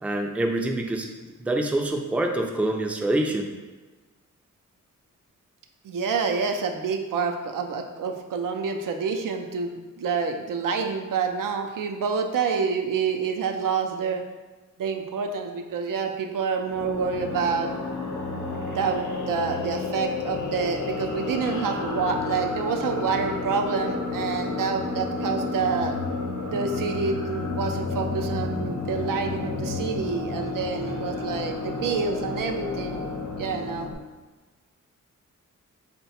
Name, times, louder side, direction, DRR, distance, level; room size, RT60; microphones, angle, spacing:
voice 1, 0.0-3.5, right 1 dB, 5° right, 2 dB, 0.3 m, -26 dB
voice 2, 5.8-14.2 14.8-17.8 18.7-26.0 26.5-33.0 33.4-33.9, right 5 dB, 90° right, 4 dB, 0.5 m, -28 dB
sound 1, 16.7-33.9, left 3 dB, 65° left, 0.7 m, -31 dB
3.8 x 2.2 x 4.2 m, 1.3 s
wide cardioid pair, 100°, 31 cm